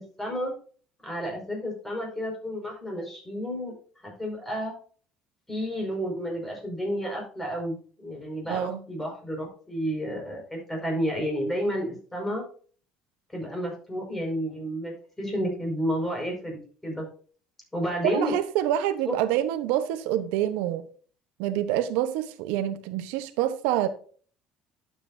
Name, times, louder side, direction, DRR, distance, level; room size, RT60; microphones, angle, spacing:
voice 1, 0.2-0.5 1.0-3.7 4.0-4.7 5.5-12.4 13.3-17.1 17.7-18.3 19.1-19.2, equal, 10° left, 5.3 m, -31 dB
voice 2, 8.5-8.8 18.0-20.9 21.4-23.9, right 12 dB, 85° right, 0.9 m, -27 dB
11.5 x 8.2 x 2.7 m
cardioid pair, 135°, 3 cm